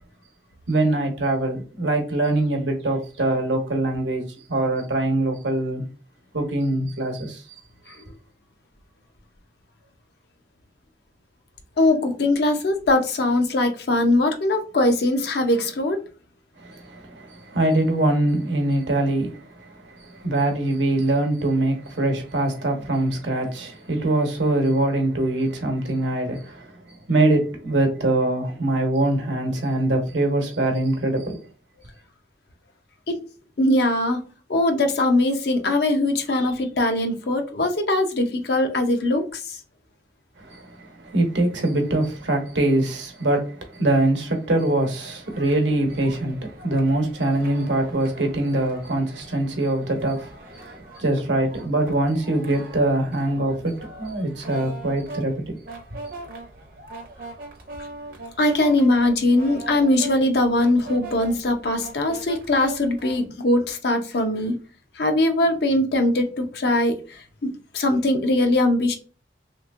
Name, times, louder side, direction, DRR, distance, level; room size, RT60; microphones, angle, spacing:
voice 1, 0.7-5.8 6.3-7.6 16.6-31.4 40.4-55.6, right 1 dB, 80° right, 0.9 m, -23 dB
voice 2, 11.8-16.0 33.1-33.2 33.6-34.2 34.5-39.6 58.4-64.6 65.0-68.9, left 1 dB, 60° left, 0.6 m, -21 dB
sound 1, 45.2-63.3, right 2 dB, 50° right, 0.7 m, -41 dB
3.3 x 3.0 x 2.4 m
head